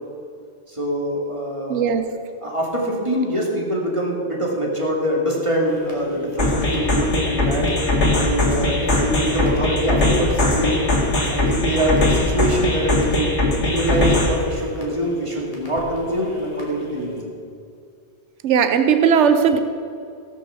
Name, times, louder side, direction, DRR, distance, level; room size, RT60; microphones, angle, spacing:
voice 1, 0.7-1.8 2.4-7.7 8.2-10.9 11.3-17.3, equal, 25° right, -2 dB, 2.3 m, -24 dB
voice 2, 1.7-2.1 18.4-19.6, right 7 dB, 85° right, 9 dB, 1.0 m, -17 dB
sound 1, 5.6-17.2, equal, 30° left, 2.7 m, -36 dB
sound 2, 6.4-14.4, left 2 dB, 80° left, 2.5 m, -20 dB
17.5 x 6.7 x 6.9 m, 2.4 s
omnidirectional pair, 1.2 m